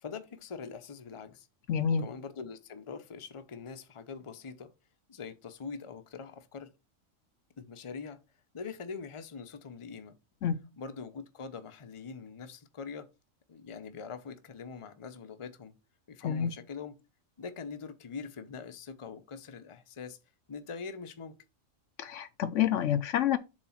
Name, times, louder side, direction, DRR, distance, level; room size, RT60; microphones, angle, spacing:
voice 1, 0.0-1.5 2.0-4.7 5.1-6.7 7.6-8.2 8.5-10.2 10.8-13.1 13.5-15.7 16.1-17.0 17.4-20.2 20.5-21.4, left 5 dB, 30° left, 0.7 m, -43 dB
voice 2, 1.7-2.0 10.4-10.6 16.2-16.5 22.0-23.4, left 9 dB, 70° left, 1.0 m, -28 dB
7.4 x 3.6 x 5.7 m
omnidirectional pair, 1.4 m